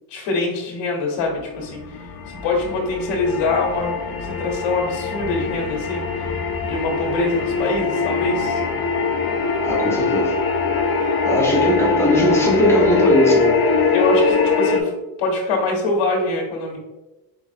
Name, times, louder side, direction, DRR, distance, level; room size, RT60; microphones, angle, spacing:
voice 1, 0.1-6.2 6.6-8.6 11.5-11.7 12.0-12.2 13.9-14.9 15.2-16.8, left 3 dB, 75° left, -1 dB, 1.2 m, -24 dB
sound 1, 1.4-14.8, left 4 dB, 50° left, 0.9 m, -22 dB
voice 2, 9.6-10.4 11.2-13.6, equal, 5° left, -3 dB, 1.3 m, -19 dB
4.9 x 3.4 x 2.7 m, 1.1 s
cardioid pair, 105°, 47 cm